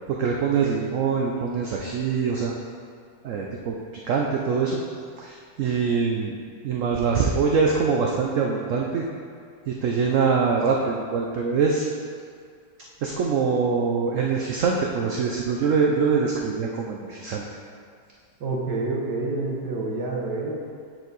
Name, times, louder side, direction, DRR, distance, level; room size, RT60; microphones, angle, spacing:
voice 1, 0.1-2.5 3.2-3.8 4.0-4.8 5.2-6.3 6.6-9.0 9.7-11.9 13.0-17.4, right 5 dB, 65° right, 0 dB, 0.8 m, -24 dB
voice 2, 18.4-20.6, right 3 dB, 80° right, -1 dB, 1.6 m, -28 dB
8.6 x 4.5 x 4.0 m, 2.2 s
omnidirectional pair, 1.8 m